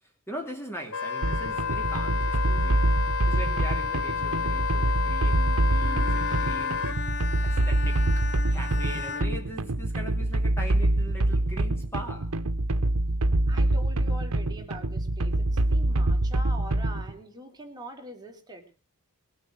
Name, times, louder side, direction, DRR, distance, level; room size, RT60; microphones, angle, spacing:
voice 1, 0.0-2.9 3.3-7.0 7.4-12.4, right 1 dB, 10° left, 2.6 m, -40 dB
Wind instrument woodwind instrument, 0.9-7.0, left 7 dB, 85° left, 1.2 m, -30 dB
sound 1, 1.2-17.1, right 1 dB, 80° right, 0.9 m, -25 dB
Bowed string instrument, 5.8-10.3, left 6 dB, 50° left, 0.9 m, -37 dB
voice 2, 13.5-18.6, right 1 dB, 20° right, 3.3 m, -43 dB
21.5 x 8.1 x 6.3 m
head